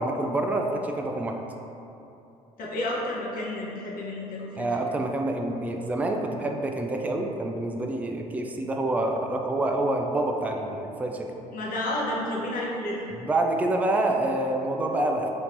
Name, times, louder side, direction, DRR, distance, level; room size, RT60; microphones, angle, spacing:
voice 1, 0.0-1.4 4.6-11.3 13.2-15.3, right 2 dB, 10° right, 2 dB, 0.3 m, -27 dB
voice 2, 2.6-4.7 11.5-13.0, left 1 dB, 50° left, -4 dB, 0.9 m, -31 dB
4.4 x 2.8 x 2.6 m, 2.8 s
hypercardioid pair, 55°, 19 cm